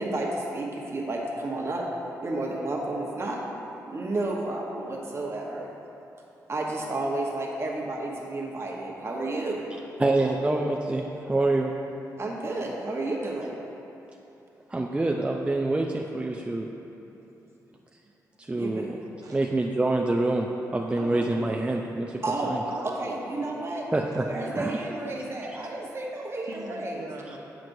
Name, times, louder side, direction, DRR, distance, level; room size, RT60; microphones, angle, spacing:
voice 1, 0.0-1.9 2.2-3.4 3.9-5.7 6.5-9.6 12.2-13.5 18.6-18.9 22.2-22.5 23.0-23.8 24.2-27.1, right 2 dB, 40° right, -2 dB, 1.0 m, -31 dB
voice 2, 10.0-11.7 14.7-16.7 18.4-19.0 19.3-22.6 23.9-24.3 24.6-24.8, right 2 dB, 15° right, 0 dB, 0.4 m, -26 dB
voice 3, 21.0-21.5 22.7-23.5 24.1-24.5 26.4-27.4, right 2 dB, 60° right, -2 dB, 0.8 m, -41 dB
7.4 x 6.0 x 2.6 m, 3.0 s
cardioid pair, 65°, 7 cm